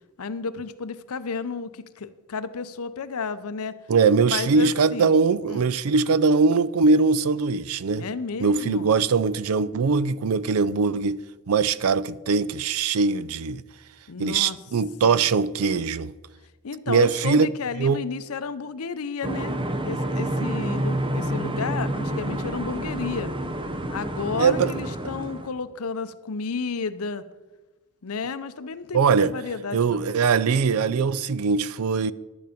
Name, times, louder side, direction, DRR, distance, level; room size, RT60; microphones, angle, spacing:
voice 1, 0.2-3.8 4.3-5.2 5.5-5.7 8.0-8.9 14.1-14.6 15.0-15.2 16.6-19.6 19.9-23.3 23.9-27.2 28.0-30.1, left 5 dB, 70° left, 0.6 m, -32 dB
voice 2, 3.9-8.0 8.4-13.6 14.2-16.1 16.9-17.5 17.8-18.0 24.4-24.7 28.9-29.3 29.7-32.1, right 5 dB, 70° right, 0.4 m, -21 dB
sound 1, 19.2-25.5, right 1 dB, 25° right, 0.8 m, -28 dB
11.5 x 9.3 x 5.1 m
head